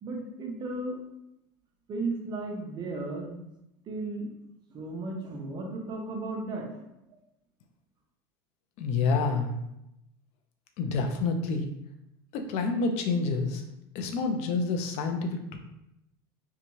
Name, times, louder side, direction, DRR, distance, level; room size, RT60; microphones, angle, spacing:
voice 1, 0.0-1.0 1.9-3.4 3.9-4.3 4.7-6.8, right 2 dB, 35° right, 0 dB, 0.7 m, -35 dB
voice 2, 8.8-9.6 10.8-11.7 12.3-13.6 13.9-15.6, left 4 dB, 55° left, 5 dB, 0.5 m, -28 dB
2.7 x 2.3 x 3.0 m, 0.85 s
supercardioid pair, 125°, 13 cm